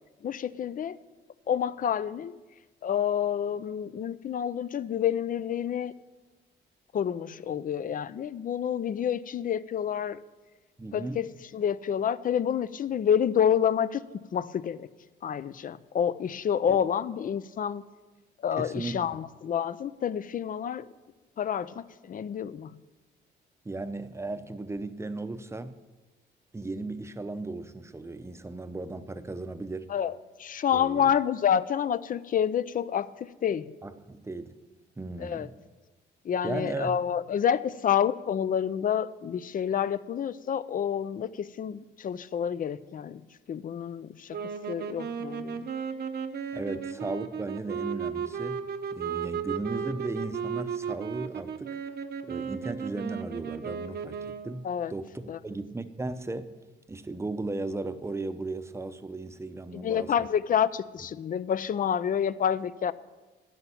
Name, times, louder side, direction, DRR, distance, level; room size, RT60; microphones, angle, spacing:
voice 1, 0.2-1.0 1.5-2.3 2.8-5.9 6.9-10.2 10.9-14.0 14.3-14.9 15.2-17.8 18.4-20.9 21.4-22.8 29.9-33.7 35.2-35.5 36.2-45.7 54.6-54.9 55.3-55.4 59.7-62.9, left 8 dB, 45° left, 17 dB, 0.5 m, -28 dB
voice 2, 10.8-11.3 16.7-16.8 18.6-19.2 23.6-25.8 26.5-29.9 30.7-31.1 33.8-34.6 35.0-35.5 36.4-37.0 46.5-48.6 48.9-51.8 52.2-56.5 56.9-60.3, right 2 dB, 15° right, 10 dB, 0.7 m, -36 dB
sound 1, 44.3-54.6, right 7 dB, 55° right, 0.8 m, -35 dB
11.0 x 5.9 x 8.9 m, 1.2 s
cardioid pair, 90°, 20 cm